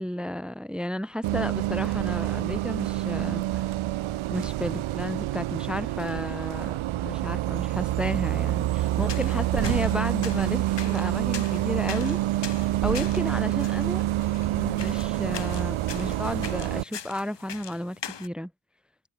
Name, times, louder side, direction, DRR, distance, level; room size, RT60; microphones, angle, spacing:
voice 1, 0.0-3.7 4.3-14.0 14.5-18.5, left 1 dB, ahead, 0.7 m, -33 dB
Bus, 1.2-16.8, right 15 dB, 90° right, 0.5 m, -27 dB
sound 1, 8.8-18.3, left 8 dB, 60° left, 2.0 m, -42 dB
wide cardioid pair, 160°, 47 cm